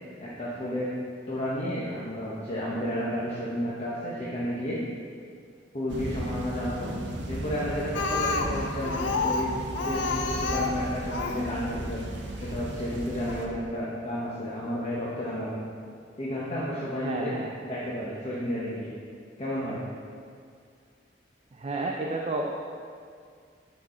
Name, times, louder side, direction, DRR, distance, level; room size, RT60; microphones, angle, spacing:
voice 1, 0.2-0.9 1.3-4.8 5.7-6.9 7.3-12.1 12.4-15.6 16.2-17.3 17.6-18.9 19.4-19.8, equal, 35° left, -7 dB, 0.9 m, -32 dB
sound 1, 5.9-13.5, right 1 dB, 70° right, 0.7 m, -36 dB
Speech, 7.9-11.5 12.4-12.5 12.9-13.0 13.3-13.4, left 4 dB, 70° left, 0.5 m, -29 dB
voice 2, 17.0-17.5 21.5-22.5, right 2 dB, 35° right, 0 dB, 0.4 m, -31 dB
6.2 x 6.0 x 3.8 m, 2.2 s
head